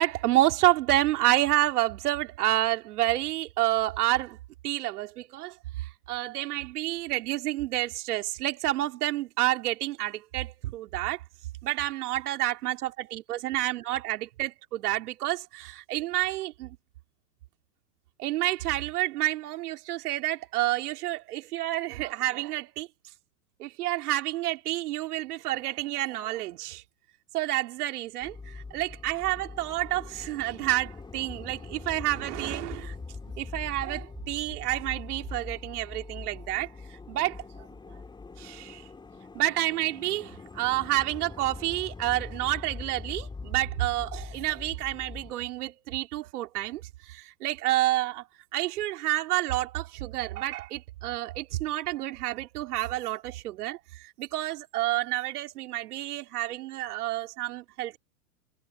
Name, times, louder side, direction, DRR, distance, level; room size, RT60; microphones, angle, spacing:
voice 1, 0.0-4.4 4.6-11.2 11.6-16.8 18.2-22.9 23.6-26.8 27.3-32.9 33.2-37.7 38.4-38.8 39.3-48.2 48.5-58.0, right 16 dB, 65° right, 3.4 m, -29 dB
sound 1, 28.2-45.3, left 4 dB, 10° left, 3.5 m, -42 dB
hypercardioid pair, 130°, 49 cm